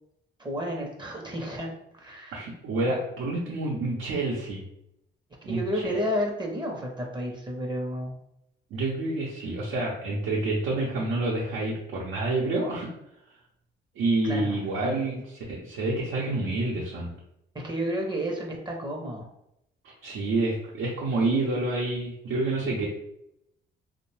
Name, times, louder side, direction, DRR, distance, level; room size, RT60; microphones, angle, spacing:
voice 1, 0.4-2.4 5.4-8.1 14.2-15.0 17.5-19.3, equal, 20° right, 0 dB, 0.6 m, -31 dB
voice 2, 2.3-4.6 5.4-6.1 8.7-12.9 13.9-15.2 15.5-17.1 20.0-22.9, right 2 dB, 85° right, -4 dB, 0.6 m, -28 dB
2.6 x 2.1 x 3.1 m, 0.79 s
cardioid pair, 90°, 20 cm